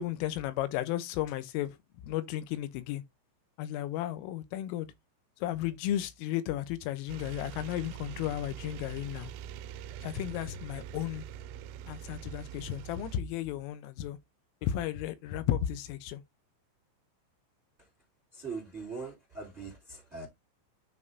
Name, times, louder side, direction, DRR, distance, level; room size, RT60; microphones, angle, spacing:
voice 1, 0.0-1.8 2.0-3.0 3.6-4.9 5.4-9.3 10.0-11.3 11.9-14.2 14.6-16.2, left 12 dB, 85° left, 3.4 m, -34 dB
sound 1, 7.1-13.2, right 10 dB, 90° right, 3.3 m, -43 dB
voice 2, 18.3-20.3, right 4 dB, 20° right, 1.9 m, -41 dB
9.5 x 5.4 x 2.7 m
omnidirectional pair, 5.8 m